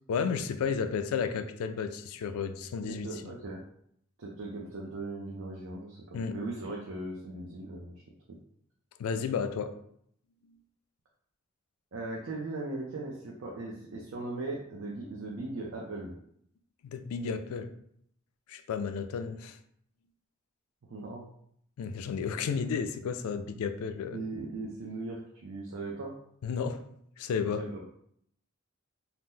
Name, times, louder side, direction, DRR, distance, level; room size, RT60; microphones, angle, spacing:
voice 1, 0.1-3.1 6.1-6.4 9.0-9.7 16.8-17.7 18.5-19.6 21.8-24.2 26.4-26.9 27.2-27.6, left 6 dB, 90° left, 9 dB, 0.3 m, -32 dB
voice 2, 2.9-3.6 4.2-7.9 11.9-16.1 20.9-21.3 24.1-26.1 27.6-27.8, right 2 dB, 65° right, -3 dB, 0.5 m, -38 dB
2.8 x 2.0 x 3.5 m, 0.69 s
head